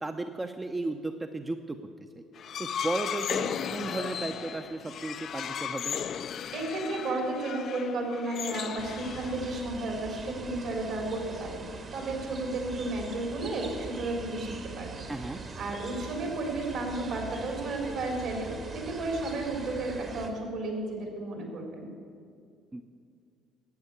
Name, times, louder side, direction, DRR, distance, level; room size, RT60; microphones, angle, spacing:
voice 1, 0.0-1.8 2.6-6.0 15.1-15.4 22.7-22.8, right 2 dB, 20° right, 6 dB, 0.7 m, -34 dB
sound 1, 2.4-9.6, left 8 dB, 50° left, 0.4 m, -35 dB
voice 2, 6.5-11.6 11.9-15.1 15.5-21.9, right 2 dB, 65° right, 1 dB, 3.8 m, -33 dB
sound 2, 8.8-20.3, right 4 dB, 45° right, 1.8 m, -42 dB
11.5 x 8.7 x 8.2 m, 2.3 s
hypercardioid pair, 60°, 0 cm